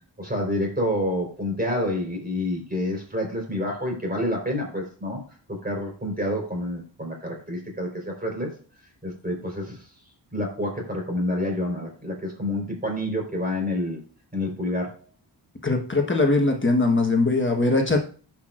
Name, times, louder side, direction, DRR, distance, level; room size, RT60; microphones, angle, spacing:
voice 1, 0.2-5.2 5.5-8.5 9.0-9.8 10.3-14.0 14.3-14.9, left 1 dB, 20° right, 0 dB, 4.3 m, -28 dB
voice 2, 15.6-18.0, left 3 dB, 25° left, 2 dB, 1.4 m, -21 dB
17.0 x 6.0 x 2.5 m, 0.40 s
wide cardioid pair, 95°, 43 cm